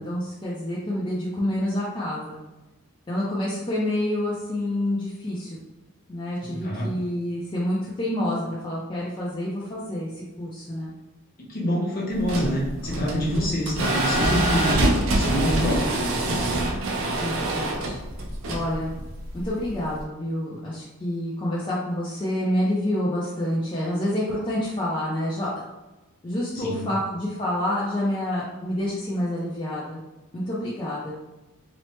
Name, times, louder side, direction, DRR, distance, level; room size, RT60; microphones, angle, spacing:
voice 1, 0.0-2.3 3.1-5.6 6.1-10.9 17.2-18.0 18.5-18.9 19.3-25.5 26.2-30.0 30.3-31.1, left 1 dB, 25° left, -7 dB, 0.4 m, -28 dB
voice 2, 6.4-6.9 11.5-14.8 15.1-15.9 26.5-26.9, equal, 40° left, -4 dB, 0.8 m, -26 dB
sound 1, 12.1-20.0, right 1 dB, 65° right, 0.4 m, -25 dB
3.0 x 2.0 x 2.9 m, 1.1 s
head